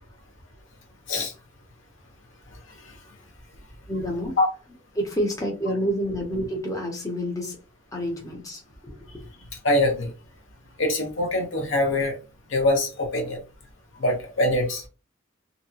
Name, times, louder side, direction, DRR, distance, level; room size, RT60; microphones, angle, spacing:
voice 1, 3.9-4.3 5.0-7.6 7.9-9.2, equal, 20° left, 0.6 m, -28 dB
voice 2, 9.6-10.1 10.8-12.2 12.5-13.4 13.9-14.8, left 1 dB, 85° left, 0.8 m, -23 dB
2.7 x 2.2 x 2.6 m
head